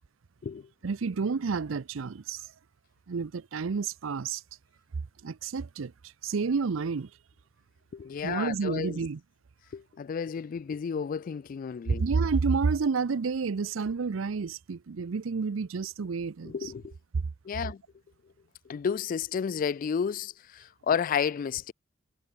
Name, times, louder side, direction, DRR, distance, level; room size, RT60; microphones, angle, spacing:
voice 1, 0.8-2.5 3.1-4.4 5.2-5.9 6.2-7.1 8.2-9.2 11.9-16.7 17.2-17.3, right 5 dB, 75° right, 0.5 m, -30 dB
voice 2, 7.9-9.0 9.7-12.0 16.4-16.9 17.4-17.8 18.7-21.7, left 7 dB, 45° left, 0.3 m, -31 dB
head